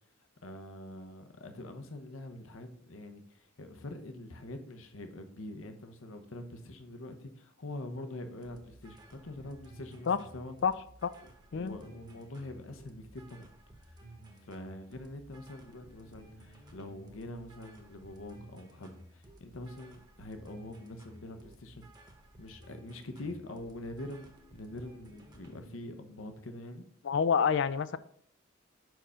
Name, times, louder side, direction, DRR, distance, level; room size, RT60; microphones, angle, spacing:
voice 1, 0.4-10.5 11.5-13.5 13.8-14.0 14.4-21.9 22.4-26.8, left 1 dB, 80° left, 7 dB, 0.8 m, -44 dB
sound 1, 8.4-25.7, right 1 dB, 20° right, 1.0 m, -55 dB
voice 2, 27.0-28.0, left 6 dB, 65° left, 15 dB, 0.4 m, -27 dB
5.5 x 4.6 x 6.2 m, 0.64 s
head